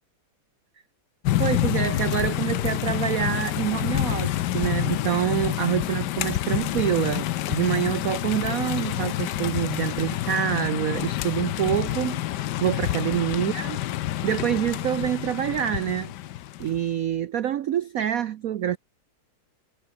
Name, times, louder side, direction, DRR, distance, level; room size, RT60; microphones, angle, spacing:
sound 1, 1.2-16.8, left 14 dB, 70° left, 1.1 m, -28 dB
voice 1, 1.4-13.8 14.2-16.1 16.6-18.8, right 10 dB, 85° right, 0.7 m, -26 dB
omnidirectional pair, 2.3 m